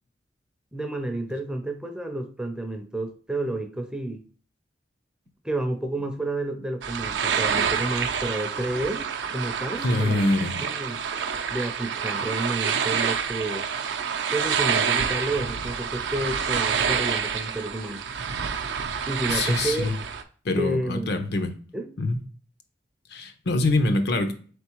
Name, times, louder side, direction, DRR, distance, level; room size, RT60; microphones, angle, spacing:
voice 1, 0.7-4.2 5.4-9.1 9.3-10.2 10.6-11.0 11.5-13.6 14.3-18.0 19.1-19.9 20.6-21.1 21.7-21.9, right 1 dB, 5° right, 5 dB, 0.4 m, -30 dB
sound 1, 6.8-20.2, right 7 dB, 80° right, 0.4 m, -28 dB
voice 2, 9.8-10.6 19.3-20.0 20.4-21.5 22.0-22.2 23.1-24.3, left 2 dB, 65° left, 8 dB, 0.6 m, -24 dB
3.9 x 3.4 x 2.9 m, 0.43 s
head